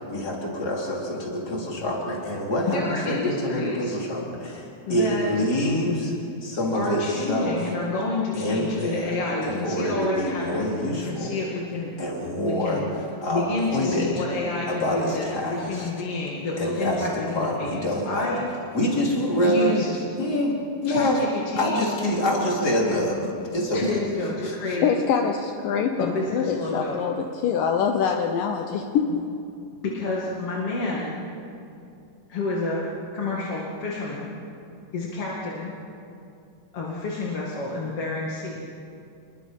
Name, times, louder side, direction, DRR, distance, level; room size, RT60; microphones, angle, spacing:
voice 1, 0.1-6.1 6.4-7.6 8.3-9.2 9.4-11.3 12.0-12.8 13.2-13.4 13.7-14.1 14.7-15.9 16.6-18.3 18.7-19.8 20.2-20.6 20.8-21.2 21.6-23.2 23.5-23.8 24.4-24.6, left 1 dB, 25° left, -2 dB, 4.0 m, -26 dB
voice 2, 2.7-4.0 4.9-5.3 6.7-11.9 12.4-12.9 13.3-18.5 19.4-19.9 20.9-21.9 23.7-24.9 26.0-27.0 29.8-31.2 32.3-32.9 33.1-34.3 34.9-35.8 36.7-38.6, left 3 dB, 45° left, -4 dB, 2.9 m, -29 dB
voice 3, 24.8-29.1, left 7 dB, 75° left, 4 dB, 2.5 m, -24 dB
27.5 x 22.0 x 5.4 m, 2.6 s
omnidirectional pair, 4.1 m